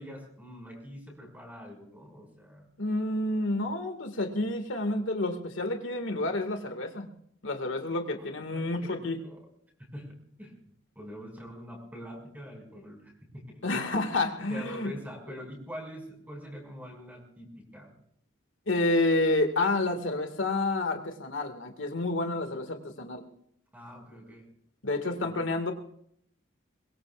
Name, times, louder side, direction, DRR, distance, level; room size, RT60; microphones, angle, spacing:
voice 1, 0.0-2.7 8.5-9.4 9.8-10.6 11.0-13.8 14.5-18.0 23.7-24.5 25.2-25.5, equal, 10° right, 1 dB, 5.7 m, -44 dB
voice 2, 2.8-7.1 7.4-9.2 13.6-14.9 18.7-23.2 24.8-25.7, left 2 dB, 75° left, 5 dB, 2.0 m, -29 dB
22.5 x 22.5 x 2.4 m, 0.68 s
head